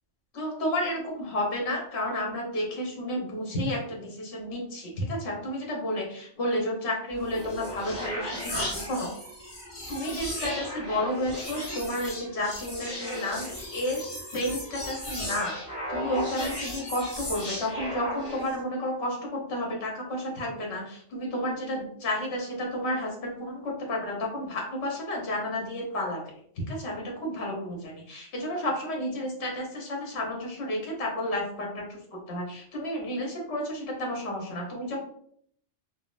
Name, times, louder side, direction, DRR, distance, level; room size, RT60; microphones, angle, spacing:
voice 1, 0.3-9.1 9.9-15.6 15.9-26.2 26.6-35.0, left 1 dB, 70° left, -1 dB, 1.1 m, -31 dB
sound 1, 7.1-18.6, left 1 dB, 40° left, 1.1 m, -36 dB
3.5 x 2.1 x 2.4 m, 0.64 s
omnidirectional pair, 1.2 m